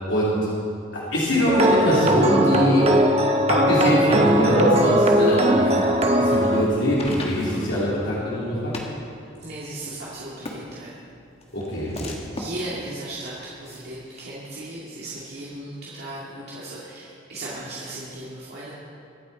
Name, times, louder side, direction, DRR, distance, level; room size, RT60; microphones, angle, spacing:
voice 1, 0.9-2.9 3.5-5.8 6.2-8.7 11.5-12.0, equal, 80° left, -8 dB, 3.1 m, -22 dB
sound 1, 1.5-6.6, right 1 dB, 35° right, 1.0 m, -19 dB
sound 2, 5.9-14.2, left 1 dB, 30° left, 1.6 m, -40 dB
voice 2, 9.4-11.0 11.9-18.7, right 1 dB, 55° right, -8 dB, 2.2 m, -36 dB
24.0 x 8.9 x 4.1 m, 2.5 s
head